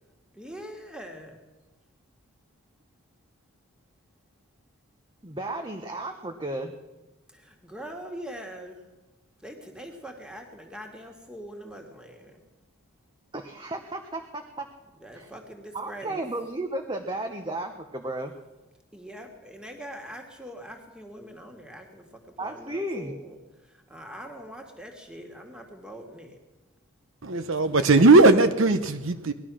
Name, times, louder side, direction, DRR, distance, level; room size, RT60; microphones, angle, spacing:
voice 1, 0.3-1.4 7.3-8.8 9.4-12.4 15.0-16.2 18.9-22.0 22.4-23.4 23.9-26.4, equal, 5° right, 2.1 m, -42 dB
voice 2, 5.2-6.7 13.3-14.7 15.1-15.3 15.7-18.3 22.4-23.2, right 1 dB, 20° right, 0.9 m, -33 dB
voice 3, 27.2-29.3, right 3 dB, 60° right, 0.9 m, -18 dB
19.5 x 12.0 x 6.3 m
head